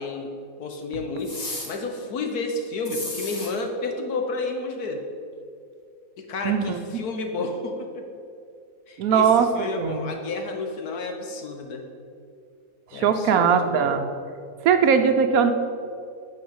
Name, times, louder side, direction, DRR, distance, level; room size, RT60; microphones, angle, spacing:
voice 1, 0.0-5.0 6.2-8.1 8.9-11.9 12.9-14.0, left 3 dB, 75° left, 4 dB, 1.5 m, -31 dB
sound 1, 1.2-1.7 2.8-3.5, left 2 dB, 25° left, 1.3 m, -33 dB
voice 2, 6.4-6.8 9.0-10.0 12.9-14.0 14.6-15.5, right 6 dB, 70° right, 8 dB, 1.0 m, -20 dB
9.5 x 4.7 x 7.1 m, 2.4 s
omnidirectional pair, 1.7 m